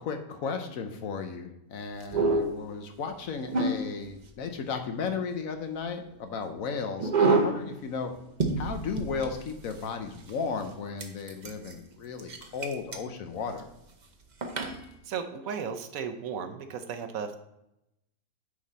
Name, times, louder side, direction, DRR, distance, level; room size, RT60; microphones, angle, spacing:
voice 1, 0.0-8.1 8.6-13.7, left 5 dB, 65° left, 6 dB, 1.2 m, -35 dB
sound 1, 2.0-2.6 3.4-4.2 7.0-7.7 8.1-8.2 8.4-9.9 10.3-10.4 11.0-11.7 12.2-13.0 13.4-13.6 14.4-14.8, right 3 dB, 40° right, 0.7 m, -27 dB
voice 2, 15.1-17.4, right 6 dB, 70° right, 7 dB, 1.0 m, -35 dB
9.7 x 3.9 x 4.1 m, 0.86 s
omnidirectional pair, 1.6 m